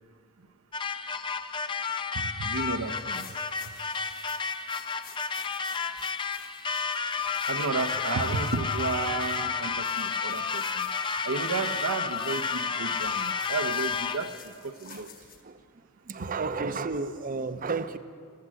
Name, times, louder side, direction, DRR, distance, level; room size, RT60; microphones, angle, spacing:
sound 1, 0.7-14.4, left 5 dB, 25° left, 0.5 m, -31 dB
voice 1, 2.1-3.3 7.5-10.9 11.2-15.1 16.2-16.3, right 4 dB, 85° right, 0.9 m, -32 dB
sound 2, 2.9-15.4, left 8 dB, 45° left, 1.2 m, -51 dB
voice 2, 16.1-18.0, right 4 dB, 40° right, 0.6 m, -32 dB
15.0 x 13.0 x 7.5 m
head